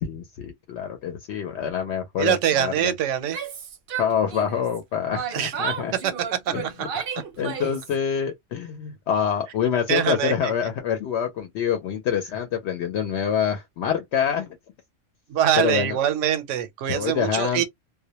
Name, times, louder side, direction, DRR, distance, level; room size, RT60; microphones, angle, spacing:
voice 1, 0.0-2.9 4.0-5.9 6.5-6.6 7.4-14.6 15.6-16.0 16.9-17.6, left 8 dB, 70° left, 0.8 m, -26 dB
voice 2, 2.2-3.4 5.3-5.5 6.0-6.4 9.9-10.5 15.3-17.6, right 10 dB, 85° right, 0.9 m, -24 dB
Yell, 3.2-4.8 5.1-7.9, right 7 dB, 60° right, 0.7 m, -33 dB
2.1 x 2.0 x 2.8 m
omnidirectional pair, 1.2 m